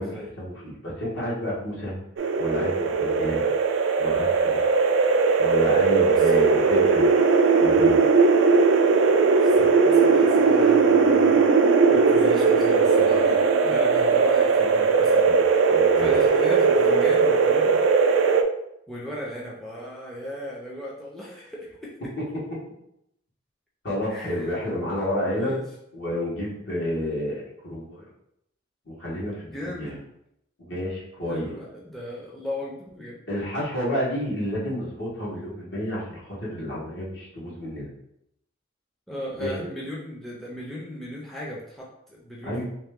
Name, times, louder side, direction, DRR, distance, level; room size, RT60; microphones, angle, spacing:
voice 1, 0.0-1.9 2.4-3.4 4.0-4.7 5.4-8.0 15.3-15.4 15.7-16.1 22.2-22.3 23.8-25.6 25.9-28.1 28.9-29.9 30.6-31.5 33.3-37.9 39.4-39.7 42.4-42.6, left 1 dB, 60° left, -6 dB, 1.4 m, -30 dB
sound 1, 2.2-18.4, right 4 dB, 75° right, 0.4 m, -19 dB
voice 2, 6.1-6.5 9.4-11.5 11.9-15.3 15.7-17.8 18.9-21.9 24.1-24.6 25.4-25.6 29.5-30.0 31.3-33.2 39.1-42.6, left 1 dB, ahead, -4 dB, 0.5 m, -36 dB
3.2 x 2.9 x 3.6 m, 0.78 s
head